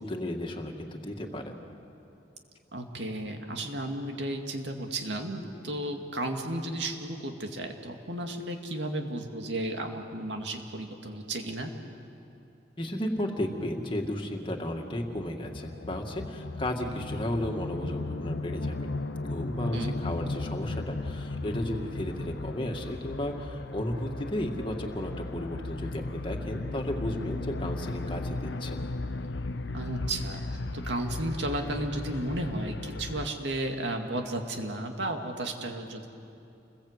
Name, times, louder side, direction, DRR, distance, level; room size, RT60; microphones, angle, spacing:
voice 1, 0.0-1.6 12.8-18.9 19.2-28.8, left 1 dB, 30° left, 2 dB, 2.2 m, -34 dB
voice 2, 2.7-11.7 19.7-20.0 29.7-30.4 30.7-36.1, right 1 dB, 75° right, 3 dB, 2.3 m, -33 dB
sound 1, 14.0-33.3, left 2 dB, 90° left, 0.9 m, -36 dB
29.0 x 21.0 x 8.2 m, 2.7 s
head